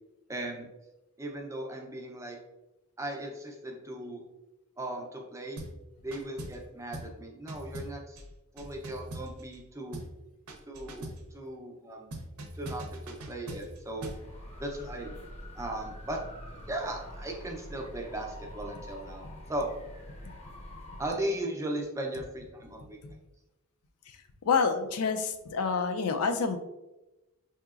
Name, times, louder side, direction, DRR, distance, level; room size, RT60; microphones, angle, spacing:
voice 1, 0.3-0.7 1.2-2.4 3.0-4.2 4.8-5.6 6.0-8.2 8.5-10.0 10.7-12.1 12.5-14.1 14.6-15.1 15.5-16.2 16.7-19.7 21.0-23.0, right 1 dB, 15° right, 1 dB, 0.5 m, -37 dB
sound 1, 5.6-5.8 6.1-6.7 6.9-7.2 7.5-9.6 9.9-10.2 10.5-11.3 12.1-14.3, right 1 dB, 75° right, 0.6 m, -42 dB
sound 2, 13.9-21.1, left 1 dB, 30° left, 0.6 m, -45 dB
voice 2, 24.5-26.6, left 5 dB, 80° left, 7 dB, 0.4 m, -28 dB
4.7 x 2.8 x 2.4 m, 0.99 s
head